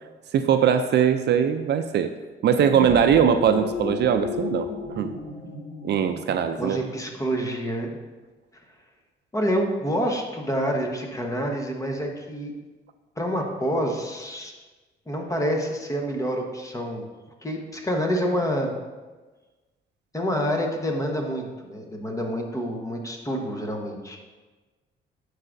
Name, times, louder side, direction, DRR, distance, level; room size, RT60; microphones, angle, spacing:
voice 1, 0.3-2.1 2.4-5.1 5.8-6.8, right 8 dB, 60° right, 9 dB, 0.4 m, -21 dB
sound 1, 2.5-7.1, left 4 dB, 85° left, 1.4 m, -34 dB
voice 2, 6.6-8.0 9.3-12.5 13.2-14.5 15.1-17.0 17.4-18.7 20.1-24.2, equal, 15° left, 2 dB, 1.1 m, -27 dB
10.5 x 4.8 x 2.6 m, 1.3 s
cardioid pair, 90°, 20 cm